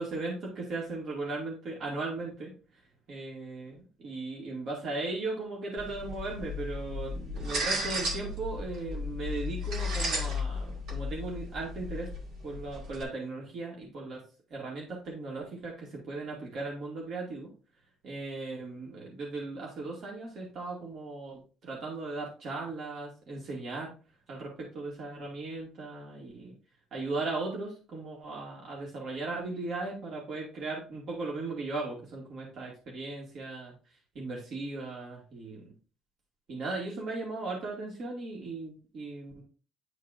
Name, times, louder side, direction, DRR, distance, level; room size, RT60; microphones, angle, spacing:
voice 1, 0.0-2.5 3.1-3.8 4.0-12.1 12.4-14.2 14.5-17.5 18.0-23.9 24.3-26.5 26.9-33.7 34.2-35.7 36.5-39.4, right 3 dB, 50° right, -2 dB, 2.2 m, -37 dB
sound 1, 5.8-13.0, left 1 dB, 70° right, 2.2 m, -35 dB
10.5 x 4.6 x 2.6 m, 0.35 s
cardioid pair, 145°, 0 cm